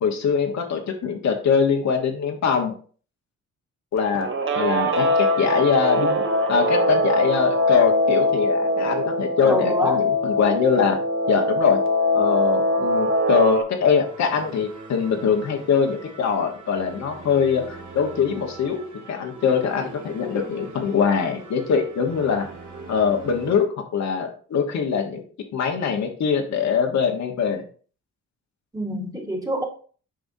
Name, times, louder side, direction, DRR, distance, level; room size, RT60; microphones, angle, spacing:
voice 1, 0.0-2.7 3.9-4.3 4.5-11.0 11.3-11.8 12.1-22.5 22.9-23.7 23.9-25.2 25.5-27.6, left 6 dB, 65° left, 1.3 m, -23 dB
Guitar, 4.2-13.6, left 1 dB, 45° right, 1.1 m, -22 dB
voice 2, 9.4-10.0 28.7-29.6, right 1 dB, 10° right, 1.6 m, -26 dB
sound 1, 14.0-23.5, right 3 dB, 70° right, 2.9 m, -41 dB
7.7 x 4.9 x 2.7 m
cardioid pair, 90°, 30 cm